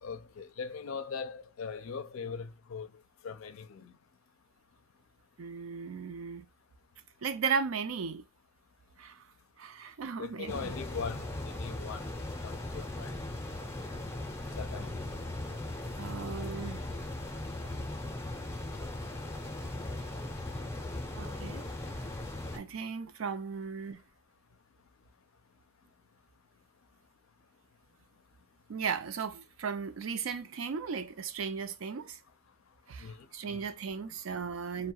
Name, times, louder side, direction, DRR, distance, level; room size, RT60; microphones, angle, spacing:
voice 1, 0.0-2.9 3.2-3.9 10.2-12.1 12.4-13.2 14.6-15.0 33.0-33.2 33.5-33.6, left 5 dB, 75° left, 0.4 m, -40 dB
voice 2, 5.4-6.5 7.2-8.2 9.0-9.2 9.6-10.7 15.9-16.8 21.2-21.7 22.5-24.0 28.7-32.2 32.9-34.9, right 6 dB, 75° right, 0.4 m, -36 dB
sound 1, 10.5-22.6, left 1 dB, 15° left, 0.5 m, -38 dB
2.3 x 2.1 x 2.6 m
head